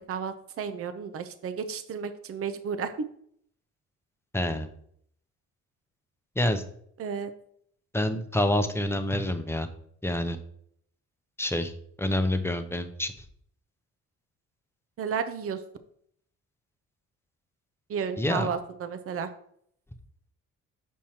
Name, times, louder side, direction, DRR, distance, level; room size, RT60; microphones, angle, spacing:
voice 1, 0.0-2.9 7.0-7.3 15.0-15.6 17.9-19.3, right 6 dB, 50° right, 10 dB, 0.7 m, -32 dB
voice 2, 4.3-4.7 6.4-6.6 7.9-9.7 10.0-10.4 11.4-11.7 12.0-13.1 18.2-18.5, left 1 dB, 10° left, 7 dB, 0.7 m, -27 dB
7.1 x 6.2 x 2.9 m, 0.65 s
cardioid pair, 90°, 30 cm